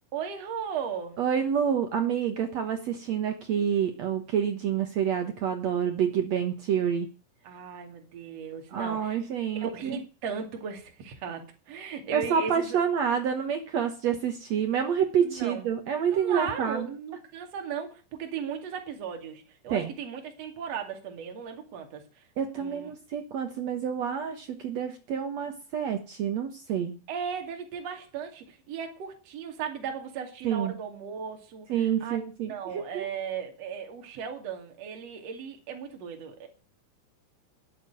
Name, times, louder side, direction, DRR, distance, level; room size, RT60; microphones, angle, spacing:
voice 1, 0.1-1.2 7.4-9.2 9.5-12.8 15.2-15.7 16.1-22.3 22.6-22.9 27.1-32.2 32.5-36.5, right 7 dB, 45° right, 2.9 m, -37 dB
voice 2, 1.2-7.1 8.7-10.0 12.1-16.9 19.7-19.9 22.4-27.0 30.4-30.7 31.7-33.1, right 8 dB, 85° right, 1.5 m, -28 dB
13.0 x 6.9 x 9.1 m
omnidirectional pair, 5.1 m